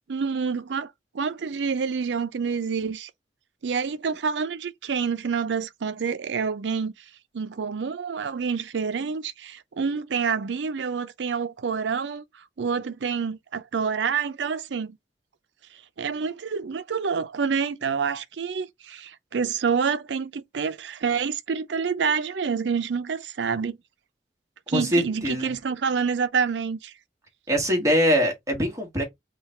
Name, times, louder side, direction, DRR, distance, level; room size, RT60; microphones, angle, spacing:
voice 1, 0.1-3.1 3.6-6.9 7.3-12.2 12.6-15.0 16.0-23.8 24.7-26.9, right 6 dB, 75° right, 0.5 m, -27 dB
voice 2, 24.7-25.5 27.5-29.0, equal, 20° right, 1.4 m, -23 dB
3.7 x 2.3 x 4.3 m
head